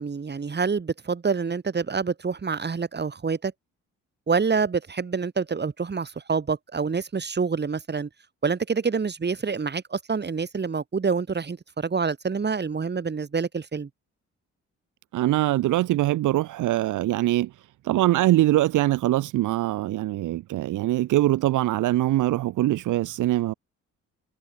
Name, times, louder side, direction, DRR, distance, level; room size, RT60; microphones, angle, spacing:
voice 1, 0.0-3.5 4.3-8.1 8.4-13.9, right 5 dB, 35° right, 6.4 m, -27 dB
voice 2, 15.1-17.5 17.8-23.5, right 15 dB, 85° right, 1.5 m, -23 dB
cardioid pair, 90°, 30 cm